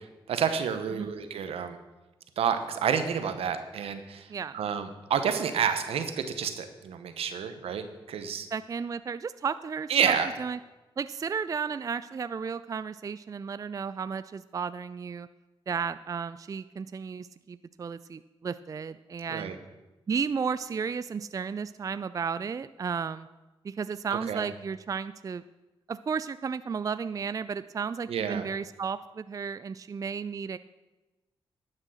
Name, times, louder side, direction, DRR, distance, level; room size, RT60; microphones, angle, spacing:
voice 1, 0.3-1.8 2.4-8.5 9.9-10.4 19.3-19.6 24.3-24.5 28.1-28.5, right 7 dB, 85° right, 9 dB, 1.0 m, -29 dB
voice 2, 8.5-10.6 11.0-15.3 15.7-19.6 20.1-23.3 23.6-25.4 25.9-30.6, right 6 dB, 35° right, 14 dB, 0.3 m, -33 dB
11.5 x 6.4 x 6.3 m, 1.1 s
cardioid pair, 60°, 10 cm